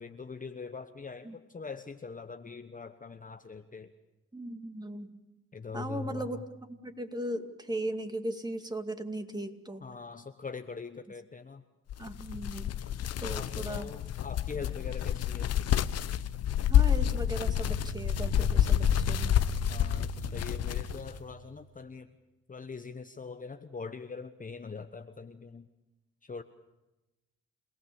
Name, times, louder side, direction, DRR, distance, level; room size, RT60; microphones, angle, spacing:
voice 1, 0.0-3.9 5.5-6.3 9.8-11.6 13.0-15.5 19.7-22.1 22.5-25.7 26.2-26.4, left 5 dB, 25° left, 8 dB, 1.1 m, -42 dB
voice 2, 4.3-5.2 5.7-6.4 6.7-9.8 12.0-12.8 13.2-13.9 16.7-19.4, right 1 dB, 15° right, 6 dB, 2.4 m, -37 dB
sound 1, 11.9-21.2, left 11 dB, 55° left, 0.9 m, -28 dB
sound 2, 16.2-21.8, right 8 dB, 40° right, 1.1 m, -41 dB
28.5 x 18.0 x 7.2 m, 1.0 s
supercardioid pair, 55°, 30 cm